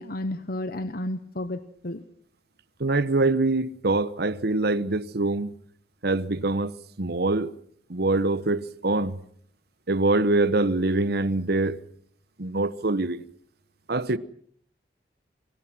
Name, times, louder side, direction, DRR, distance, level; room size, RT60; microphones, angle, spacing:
voice 1, 0.0-2.0, left 1 dB, 55° left, 1.0 m, -32 dB
voice 2, 2.8-5.5 6.0-7.5 7.9-9.2 9.9-11.8 12.4-13.2 13.9-14.2, right 2 dB, 60° right, 1.0 m, -24 dB
28.5 x 24.0 x 6.1 m
head